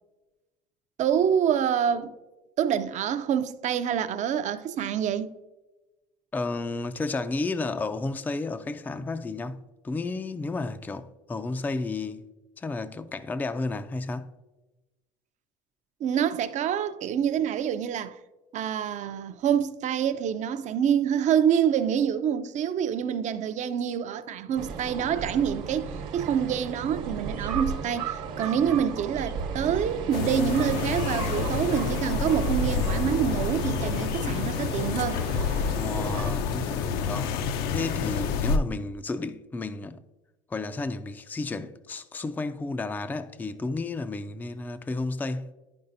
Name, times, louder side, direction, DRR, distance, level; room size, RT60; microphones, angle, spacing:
voice 1, 1.0-2.1 2.6-5.3 16.0-18.2 18.5-35.2, right 8 dB, 45° right, 0.5 m, -26 dB
voice 2, 6.3-9.6 9.8-12.2 12.6-14.3 35.7-37.4 37.7-40.0 40.5-45.5, left 3 dB, 10° left, 0.3 m, -32 dB
sound 1, 24.6-36.3, right 5 dB, 65° right, 1.0 m, -34 dB
sound 2, 30.1-38.6, left 6 dB, 70° left, 0.5 m, -28 dB
10.0 x 5.4 x 2.6 m
supercardioid pair, 90°, 17 cm